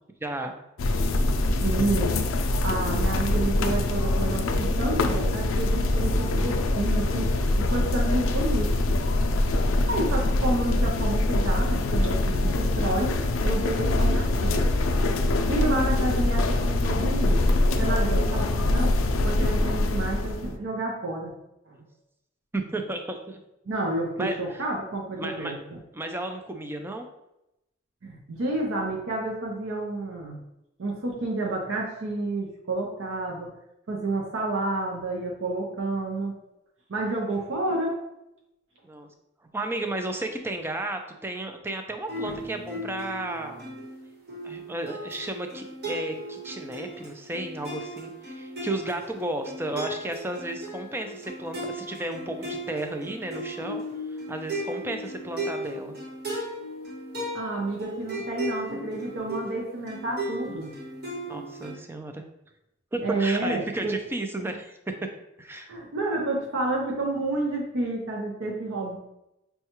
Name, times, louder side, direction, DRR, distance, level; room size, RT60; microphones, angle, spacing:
voice 1, 0.2-0.6 21.7-21.8 22.5-23.4 24.2-24.4 25.2-25.5 25.9-27.1 38.8-39.1 39.5-43.6 44.4-53.8 54.1-55.9 61.3-62.2 62.9-65.1 65.4-65.7, right 1 dB, 10° right, 5 dB, 0.3 m, -33 dB
sound 1, 0.8-20.5, left 2 dB, 85° left, 0.4 m, -24 dB
voice 2, 1.6-2.2 2.6-8.8 9.9-13.2 13.4-14.7 15.5-21.4 21.7-21.8 23.7-25.6 28.0-30.4 30.8-33.5 33.9-36.4 36.9-38.0 42.2-42.4 57.3-60.7 63.0-63.9 65.7-69.0, right 2 dB, 75° right, -2 dB, 0.6 m, -30 dB
sound 2, 42.1-61.7, right 1 dB, 55° right, 1.1 m, -36 dB
5.4 x 2.2 x 2.9 m, 0.87 s
head